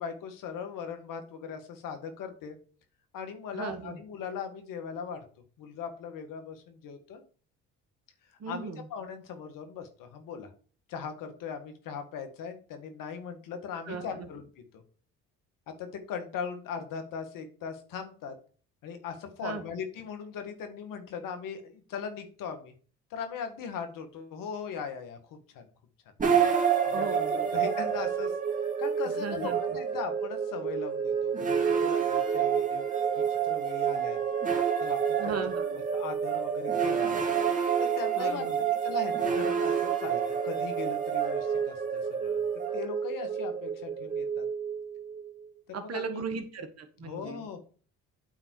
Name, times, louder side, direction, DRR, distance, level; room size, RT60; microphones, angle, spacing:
voice 1, 0.0-2.5 3.1-5.2 5.6-7.2 8.5-10.5 10.9-14.5 14.7-14.8 15.7-18.3 18.8-22.7 23.1-25.6 26.9-28.3 28.8-32.9 33.1-34.2 34.8-35.3 35.9-37.2 37.8-38.5 38.8-44.5 45.7-46.2 47.0-47.6, left 6 dB, 70° left, 7 dB, 1.8 m, -39 dB
voice 2, 3.5-4.0 8.4-8.9 13.9-14.3 19.4-19.6 26.9-27.6 29.1-29.6 35.2-35.8 38.2-38.7 45.7-47.4, right 5 dB, 45° right, 7 dB, 1.5 m, -37 dB
sound 1, 26.2-45.3, right 7 dB, 25° right, 2.5 m, -28 dB
8.8 x 3.9 x 4.7 m, 0.40 s
supercardioid pair, 65°, 34 cm